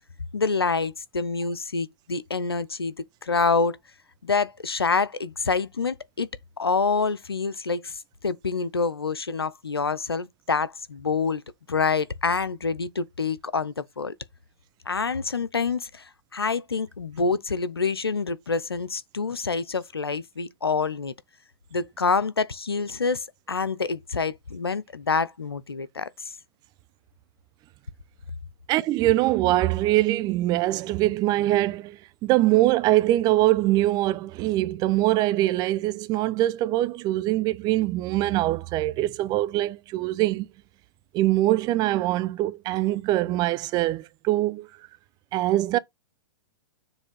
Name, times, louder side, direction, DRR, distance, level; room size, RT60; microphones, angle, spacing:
voice 1, 0.3-2.9 3.2-3.8 4.2-6.3 6.6-11.4 11.7-14.1 14.9-16.0 16.3-21.1 21.7-26.3, left 4 dB, 90° left, 0.6 m, -27 dB
voice 2, 28.7-40.5 41.1-44.7 45.3-45.8, right 16 dB, 35° right, 0.7 m, -23 dB
7.1 x 3.2 x 5.4 m
figure-of-eight pair, 105°, 13 cm